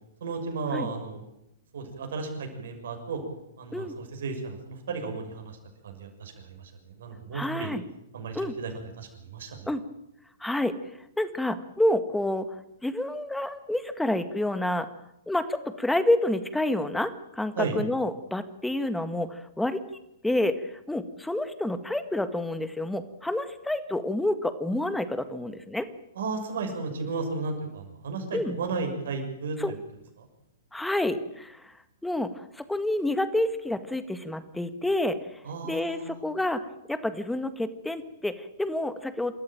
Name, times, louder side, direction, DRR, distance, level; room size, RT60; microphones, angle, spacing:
voice 1, 0.2-1.3 1.7-3.2 3.6-5.6 5.8-7.8 8.1-9.7 17.6-17.8 26.1-29.6 30.2-30.3 35.4-36.3, right 4 dB, 65° right, 4 dB, 6.5 m, -34 dB
voice 2, 7.3-7.8 8.4-8.5 9.7-9.8 10.4-10.7 11.2-12.5 12.8-14.9 15.3-19.8 20.2-25.9 28.3-28.6 29.6-29.7 30.7-31.7 32.0-35.2 35.6-39.3, left 1 dB, 5° left, 11 dB, 1.8 m, -28 dB
27.5 x 13.5 x 9.1 m, 0.81 s
figure-of-eight pair, 115°, 0 cm